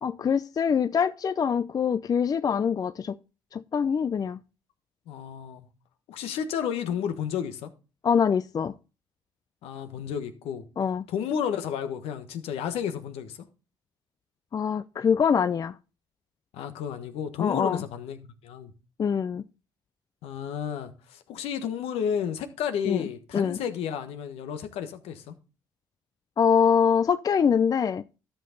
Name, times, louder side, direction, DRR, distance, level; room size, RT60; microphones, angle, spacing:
voice 1, 0.0-3.2 3.5-4.4 8.0-8.7 10.8-11.1 14.5-15.7 17.4-17.8 19.0-19.4 22.9-23.0 23.3-23.6 26.4-28.0, left 7 dB, 35° left, 0.4 m, -24 dB
voice 2, 5.1-5.7 6.1-7.7 9.6-10.6 11.1-13.4 16.5-18.2 18.4-18.7 20.2-25.3, left 8 dB, 75° left, 1.3 m, -32 dB
12.5 x 5.8 x 3.8 m
supercardioid pair, 65°, 10 cm